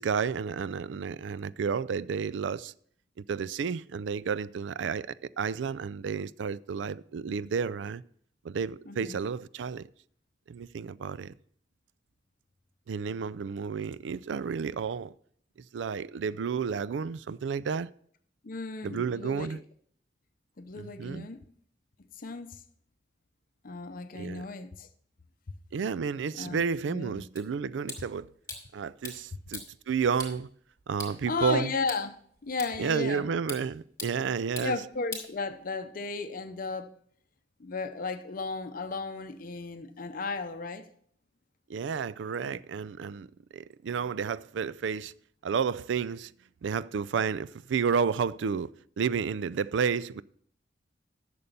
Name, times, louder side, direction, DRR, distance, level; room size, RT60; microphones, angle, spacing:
voice 1, 0.0-2.7 3.3-8.0 8.4-9.9 10.5-11.3 12.9-15.1 15.7-17.9 18.8-19.6 20.8-21.3 24.1-24.5 25.7-28.3 28.7-30.5 30.9-31.7 32.8-34.8 41.7-43.3 43.5-45.1 45.4-46.3 46.6-50.2, right 6 dB, 85° right, 0.4 m, -31 dB
voice 2, 8.9-9.2 18.4-19.6 20.6-21.4 22.2-22.6 23.6-24.9 26.4-27.2 29.3-29.4 31.3-32.1 32.4-33.3 34.6-36.9 37.6-40.9, left 4 dB, 50° left, 0.7 m, -35 dB
sound 1, 27.4-36.0, left 3 dB, 20° left, 3.5 m, -45 dB
11.0 x 6.9 x 5.3 m
head